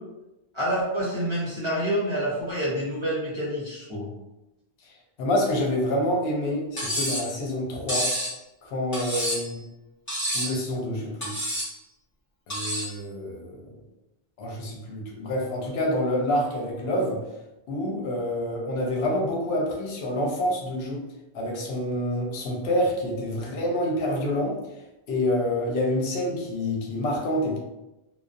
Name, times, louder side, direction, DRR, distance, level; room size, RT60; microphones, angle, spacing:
voice 1, 0.5-4.1, equal, 35° right, -7 dB, 0.6 m, -27 dB
voice 2, 5.2-8.1 8.6-9.6 10.3-11.3 12.5-13.7 14.4-17.2 17.7-21.0 21.3-24.6 25.1-27.6, left 1 dB, 75° left, -1 dB, 0.8 m, -27 dB
Cutlery silverware, 6.8-7.3 7.9-8.3 8.9-9.5 10.1-10.6 11.2-11.7 12.5-12.9, equal, 20° left, 0.9 m, -28 dB
2.4 x 2.0 x 2.5 m, 0.97 s
omnidirectional pair, 1.1 m